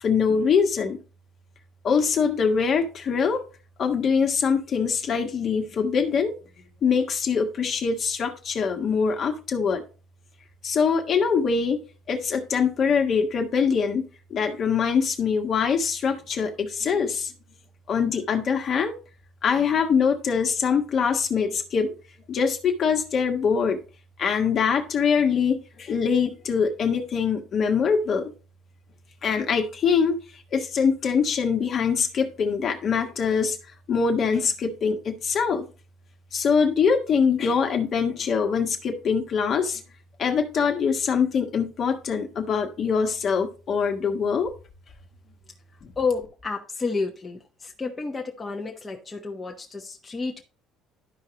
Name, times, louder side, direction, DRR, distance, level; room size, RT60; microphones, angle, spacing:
voice 1, 0.0-1.0 1.8-3.4 3.8-6.3 6.8-9.8 10.6-11.8 12.1-14.0 14.3-17.3 17.9-18.9 19.4-21.9 22.3-23.8 24.2-28.3 29.2-30.2 30.5-33.6 33.9-35.7 36.3-39.8 40.2-44.5, left 6 dB, 45° left, 4 dB, 1.3 m, -23 dB
voice 2, 46.0-50.4, left 4 dB, 20° left, 1 dB, 1.0 m, -30 dB
12.0 x 4.8 x 2.9 m, 0.34 s
cardioid pair, 115°, 0 cm